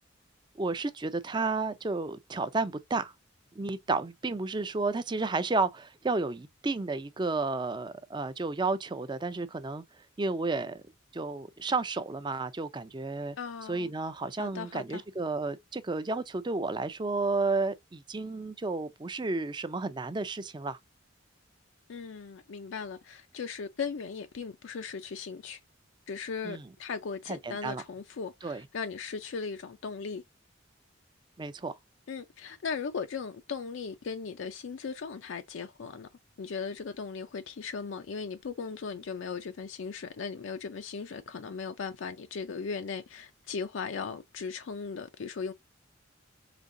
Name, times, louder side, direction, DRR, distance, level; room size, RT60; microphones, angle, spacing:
voice 1, 0.6-3.1 3.6-9.8 10.2-10.8 11.1-13.4 13.7-20.8 26.4-26.6 27.3-27.8 28.4-28.6 31.4-31.8, right 3 dB, 20° right, 0.4 m, -32 dB
voice 2, 13.4-13.9 14.4-15.0 21.9-25.6 26.1-30.2 32.1-36.1 36.4-45.5, left 5 dB, 70° left, 0.4 m, -38 dB
5.1 x 2.7 x 2.6 m
head